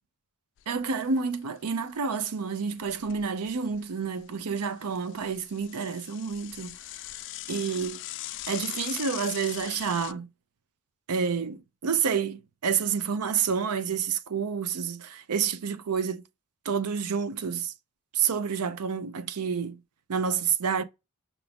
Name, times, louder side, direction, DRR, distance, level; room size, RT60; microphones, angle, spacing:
Bicycle / Mechanisms, 0.6-1.2 1.6-1.7 1.9-2.0 2.7-3.8 4.2-10.1, left 16 dB, 55° left, 0.3 m, -40 dB
voice 1, 0.7-6.8 7.5-8.0 8.5-10.3 11.1-16.2 16.6-17.7 18.1-19.8 20.1-20.8, right 6 dB, 80° right, 0.5 m, -29 dB
6.0 x 2.5 x 3.4 m
head